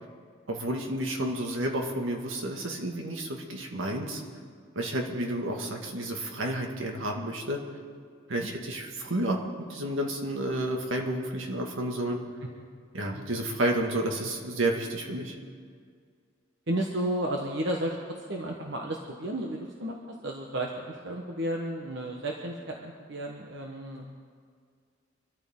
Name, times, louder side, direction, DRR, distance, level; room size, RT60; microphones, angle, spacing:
voice 1, 0.5-4.2 4.8-7.6 8.3-9.4 9.7-12.2 12.9-15.3, right 1 dB, 75° right, 1 dB, 1.9 m, -31 dB
voice 2, 16.7-18.0 18.3-20.0 20.2-24.1, right 1 dB, 60° right, 0 dB, 1.2 m, -32 dB
24.5 x 13.5 x 3.8 m, 2.1 s
head